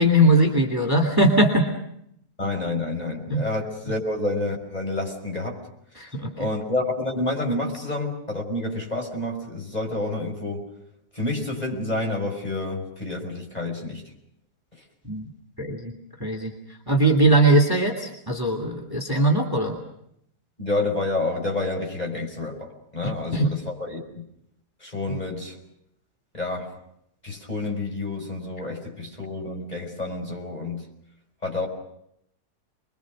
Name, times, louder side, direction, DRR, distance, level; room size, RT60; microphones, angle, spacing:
voice 1, 0.0-1.7 3.3-3.4 6.0-6.5 15.0-15.3 15.6-15.9 16.2-16.5 16.9-19.8 23.0-23.5, right 1 dB, 15° right, 3 dB, 2.6 m, -20 dB
voice 2, 2.4-5.6 6.4-10.7 11.1-14.0 20.6-24.2 24.8-25.6 26.3-26.8 27.2-30.9 31.4-31.7, left 2 dB, 25° left, 1 dB, 5.9 m, -29 dB
29.5 x 23.0 x 6.4 m, 0.74 s
omnidirectional pair, 1.7 m